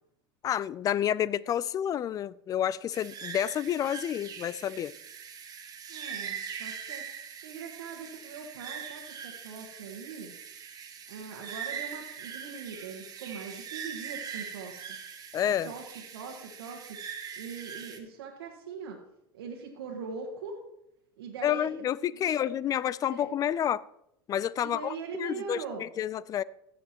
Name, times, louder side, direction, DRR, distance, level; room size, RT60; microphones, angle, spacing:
voice 1, 0.4-4.9 15.3-15.7 21.4-23.8 24.3-26.4, left 10 dB, 30° left, 0.3 m, -29 dB
sound 1, 2.9-18.0, right 7 dB, 30° right, 1.2 m, -42 dB
voice 2, 5.9-7.0 7.4-10.3 11.1-15.0 15.6-17.0 17.4-19.0 19.3-20.6 21.2-22.5 23.1-23.3 24.6-25.8, right 5 dB, 90° right, 1.4 m, -41 dB
15.5 x 6.8 x 2.9 m
supercardioid pair, 110°, 12 cm